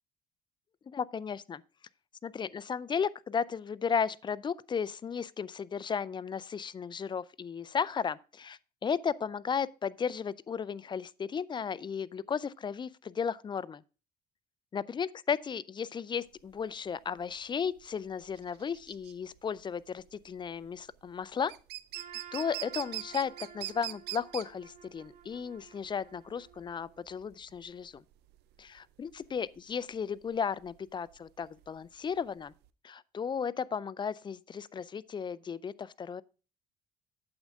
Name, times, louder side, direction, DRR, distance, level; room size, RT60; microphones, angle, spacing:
voice 1, 0.9-1.6 2.2-13.8 14.7-21.5 22.3-28.0 28.6-32.5 32.8-36.2, left 6 dB, 25° left, 0.4 m, -35 dB
sound 1, 16.3-32.7, right 17 dB, 80° right, 0.6 m, -44 dB
Trumpet, 21.9-27.0, right 8 dB, 50° right, 1.9 m, -52 dB
8.7 x 7.5 x 3.5 m
cardioid pair, 110°, 17 cm